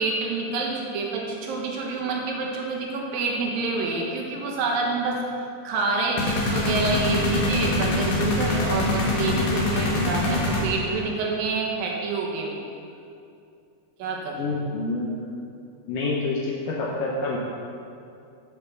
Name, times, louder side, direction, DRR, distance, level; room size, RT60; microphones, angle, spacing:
voice 1, 0.0-5.2 5.6-12.6 14.0-14.4, right 3 dB, 80° right, -1 dB, 3.0 m, -27 dB
sound 1, 6.2-11.0, left 1 dB, 60° left, 2.4 m, -24 dB
voice 2, 14.4-15.2 15.9-17.4, left 3 dB, 75° left, -3 dB, 2.4 m, -27 dB
10.0 x 5.8 x 6.9 m, 2.5 s
omnidirectional pair, 4.1 m